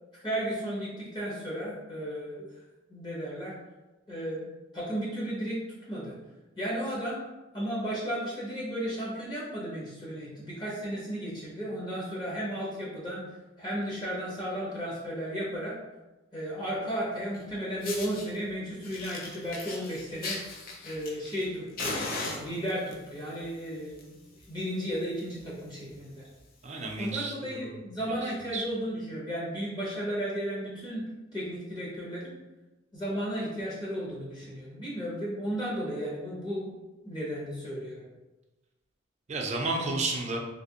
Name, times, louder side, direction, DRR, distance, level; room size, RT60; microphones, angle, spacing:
voice 1, 0.2-2.5 2.9-3.6 4.1-4.4 4.7-5.6 5.9-6.1 6.6-7.2 7.5-13.2 13.6-15.8 16.3-20.4 20.8-22.0 22.3-24.2 24.5-26.2 27.0-31.0 31.3-32.3 32.9-36.7 37.0-38.0, equal, 20° left, -6 dB, 0.9 m, -34 dB
Fire, 17.3-17.4 17.8-18.3 18.8-21.5 21.8-22.9 23.7-24.0 24.3-24.4 24.8-24.9 25.2-25.4 25.9-26.0 27.0-27.1, left 2 dB, 50° left, 0.5 m, -37 dB
voice 2, 26.6-27.7 28.5-28.7 39.3-40.4, right 3 dB, 35° right, 1 dB, 0.5 m, -31 dB
3.3 x 2.9 x 2.8 m, 1.1 s
head